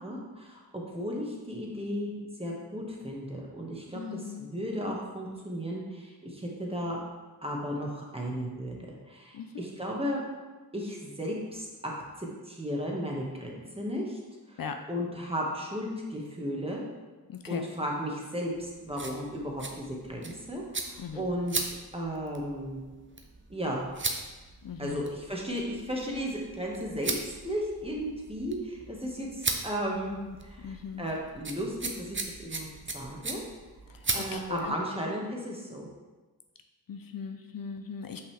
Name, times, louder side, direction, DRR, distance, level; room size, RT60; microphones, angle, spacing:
voice 1, 0.0-7.0 7.4-10.2 10.7-11.9 12.2-14.2 14.5-14.6 14.9-16.8 17.5-22.8 23.5-23.9 24.8-27.1 27.4-32.7 32.9-33.4 34.1-35.9, equal, 15° right, -2 dB, 1.4 m, -35 dB
voice 2, 3.9-4.5 9.3-9.7 14.6-14.8 17.3-17.7 21.0-21.3 24.6-25.0 30.3-30.4 30.6-31.1 33.9-34.8 36.9-38.2, left 6 dB, 60° left, 6 dB, 0.5 m, -39 dB
sound 1, 18.5-34.7, right 3 dB, 30° right, 0.8 m, -38 dB
5.9 x 5.4 x 3.3 m, 1.3 s
cardioid pair, 50°, 38 cm